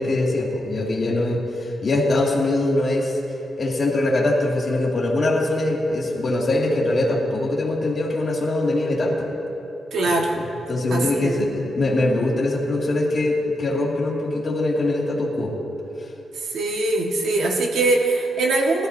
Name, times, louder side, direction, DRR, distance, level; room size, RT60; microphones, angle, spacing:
voice 1, 0.0-3.2 3.6-9.3 10.3-15.5, left 2 dB, 45° left, -3 dB, 2.3 m, -22 dB
voice 2, 9.9-10.4 10.9-11.3 16.5-18.9, right 2 dB, 75° right, 0 dB, 1.5 m, -22 dB
20.0 x 13.0 x 2.7 m, 2.9 s
cardioid pair, 100°, 0 cm